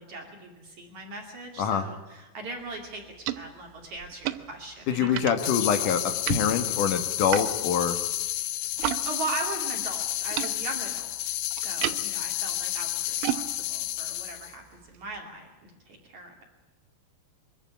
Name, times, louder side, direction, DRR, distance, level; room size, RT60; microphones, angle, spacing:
voice 1, 0.0-5.3 5.6-5.9 9.1-16.5, right 3 dB, 45° right, 1 dB, 3.5 m, -39 dB
sound 1, 2.6-9.0 9.3-15.2, right 14 dB, 80° right, 3.1 m, -37 dB
voice 2, 4.9-8.0, left 7 dB, 60° left, 7 dB, 2.5 m, -25 dB
sound 2, 5.4-14.5, left 15 dB, 75° left, 2.5 m, -31 dB
24.0 x 14.5 x 9.6 m, 1.2 s
omnidirectional pair, 5.2 m